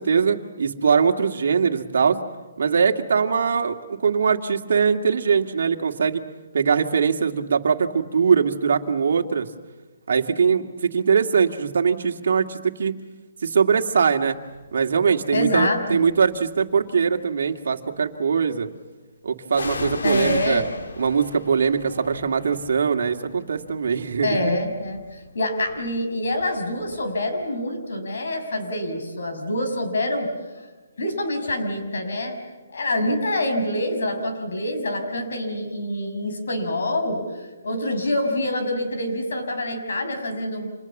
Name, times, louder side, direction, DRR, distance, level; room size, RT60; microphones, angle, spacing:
voice 1, 0.0-2.2 2.6-6.2 6.5-9.5 10.1-12.9 13.4-14.4 14.7-18.7 19.2-20.6 21.0-24.5, right 6 dB, 60° right, 4 dB, 2.2 m, -21 dB
sound 1, 14.6-14.9 15.7-16.6 19.5-27.2 27.4-27.5, left 3 dB, 85° left, 2.6 m, -37 dB
voice 2, 15.3-16.0 20.0-20.7 24.2-25.0 25.3-30.7 31.0-32.4 32.7-37.2 37.6-40.7, left 1 dB, 65° left, 5 dB, 6.4 m, -26 dB
30.0 x 27.5 x 7.3 m, 1.2 s
hypercardioid pair, 175°, 0 cm